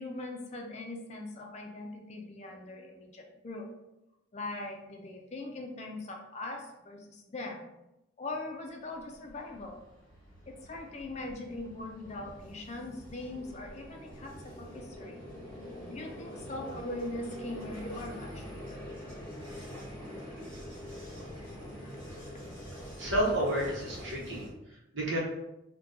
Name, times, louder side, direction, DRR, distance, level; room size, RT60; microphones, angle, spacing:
voice 1, 0.0-3.7 4.3-7.6 8.2-9.8 10.5-15.2 15.9-18.8, left 2 dB, 35° left, 1 dB, 0.4 m, -41 dB
Vehicle, 8.9-24.5, equal, 5° left, 1.1 m, -45 dB
voice 2, 23.0-24.4 24.9-25.2, right 1 dB, 70° right, -3 dB, 0.9 m, -30 dB
2.7 x 2.2 x 3.6 m, 0.90 s
head